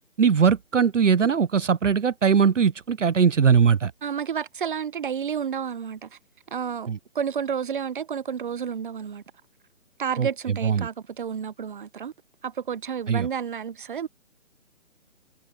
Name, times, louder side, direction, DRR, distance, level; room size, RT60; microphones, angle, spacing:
voice 1, 0.2-3.9 6.9-7.0 10.2-10.3 10.6-10.9 13.1-13.3, right 6 dB, 70° right, 0.7 m, -20 dB
voice 2, 4.0-6.2 6.5-6.9 7.1-9.2 10.0-12.1 12.4-14.1, right 7 dB, 40° right, 1.2 m, -30 dB
figure-of-eight pair, 140°, 38 cm